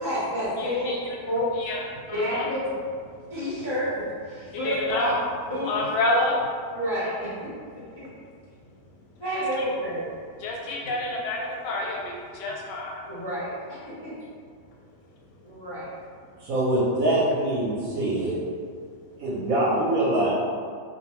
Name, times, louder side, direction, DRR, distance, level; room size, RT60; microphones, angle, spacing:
voice 1, 0.0-0.9 1.3-1.5 2.1-2.6 3.3-5.1 5.5-5.7 6.7-7.3 8.0-8.1 9.2-10.0 13.0-14.1 15.4-15.9, equal, 45° left, -13 dB, 0.3 m, -29 dB
voice 2, 0.6-1.2 1.6-1.8 2.0-2.5 4.5-5.1 5.6-6.4 9.3-9.7 10.4-13.1, left 2 dB, 85° left, -2 dB, 1.2 m, -28 dB
voice 3, 16.4-18.4 19.2-20.3, right 1 dB, 65° right, -7 dB, 1.0 m, -24 dB
2.6 x 2.2 x 2.9 m, 2.1 s
omnidirectional pair, 1.8 m